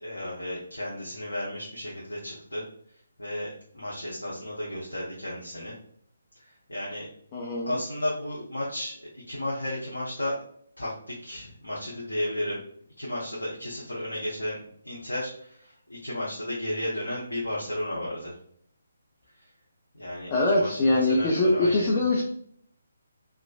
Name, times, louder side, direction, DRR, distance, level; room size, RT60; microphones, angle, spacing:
voice 1, 0.0-2.6 3.2-5.7 6.4-7.1 7.7-10.4 10.8-12.6 13.0-18.3 19.4-19.5 19.9-21.9, left 1 dB, 75° left, -6 dB, 0.8 m, -33 dB
voice 2, 7.3-7.8 20.3-22.2, left 2 dB, 25° left, -3 dB, 0.4 m, -23 dB
2.9 x 2.4 x 2.3 m, 0.64 s
figure-of-eight pair, 140°, 0 cm